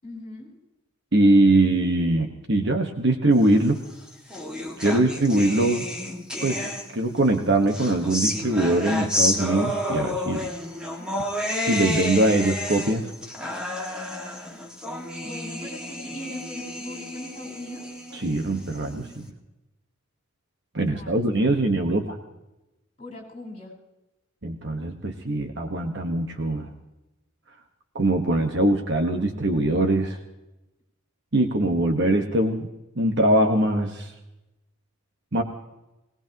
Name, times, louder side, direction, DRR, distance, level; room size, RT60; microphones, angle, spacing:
voice 1, 0.0-0.6 15.2-17.9 20.9-21.6 23.0-23.7, left 2 dB, 30° left, -1 dB, 6.2 m, -40 dB
voice 2, 1.1-3.8 4.8-5.8 6.4-10.5 11.6-13.1 18.1-19.2 20.7-22.2 24.4-26.7 27.9-30.2 31.3-32.7 33.0-34.1 35.3-35.4, right 1 dB, 50° right, 3 dB, 1.4 m, -22 dB
sound 1, 3.8-7.2 7.7-19.1, left 1 dB, 5° right, 2.0 m, -31 dB
22.5 x 19.5 x 3.0 m, 0.97 s
head